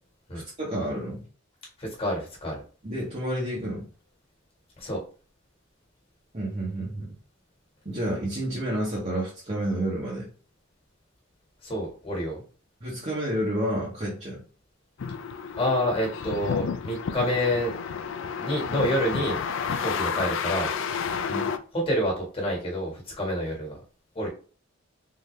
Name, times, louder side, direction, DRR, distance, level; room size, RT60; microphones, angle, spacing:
voice 1, 0.3-1.3 2.8-3.9 6.3-7.1 7.8-10.3 12.8-14.4 21.3-21.5, right 1 dB, 35° right, -6 dB, 1.1 m, -30 dB
voice 2, 1.8-2.6 4.8-5.0 11.6-12.4 15.6-17.7 18.4-19.4 19.7-20.7 21.7-23.8 24.2-24.3, equal, 30° left, -1 dB, 1.6 m, -28 dB
sound 1, 15.0-21.6, left 6 dB, 65° left, 0.4 m, -31 dB
3.7 x 2.7 x 3.2 m, 0.39 s
head